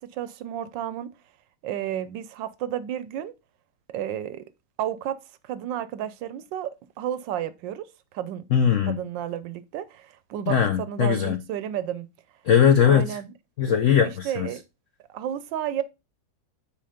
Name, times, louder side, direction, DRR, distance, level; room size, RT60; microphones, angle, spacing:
voice 1, 0.1-1.1 1.6-3.3 3.9-4.4 4.8-7.9 8.1-8.4 8.9-12.1 12.8-13.3 14.2-14.6 15.1-15.8, right 10 dB, 75° right, 1.2 m, -32 dB
voice 2, 8.5-9.0 10.5-11.4 12.5-13.2 13.6-14.5, left 8 dB, 85° left, 0.6 m, -20 dB
8.5 x 3.5 x 4.9 m
omnidirectional pair, 2.2 m